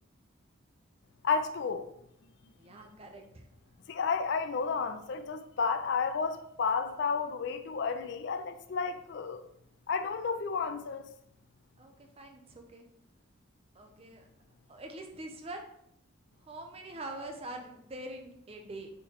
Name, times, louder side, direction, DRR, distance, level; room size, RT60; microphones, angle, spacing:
voice 1, 1.2-1.9 3.9-9.4 9.9-11.1, left 5 dB, 55° left, 0.4 m, -32 dB
voice 2, 2.6-3.5 11.8-12.9 13.7-14.3 14.7-15.7 16.5-18.9, right 1 dB, 30° right, 0.5 m, -44 dB
4.4 x 3.1 x 3.9 m
head